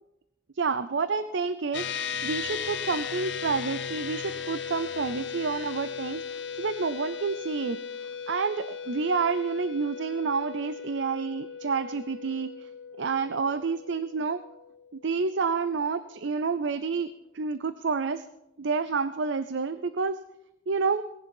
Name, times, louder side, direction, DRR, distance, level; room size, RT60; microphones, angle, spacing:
voice 1, 0.6-6.2 6.6-7.8 8.3-12.5 13.0-14.4 15.0-17.1 17.3-18.3 18.6-20.2 20.7-21.0, right 5 dB, 70° right, 13 dB, 0.6 m, -29 dB
sound 1, 1.7-15.3, left 6 dB, 65° left, 0.8 m, -37 dB
18.5 x 11.0 x 5.4 m, 0.89 s
head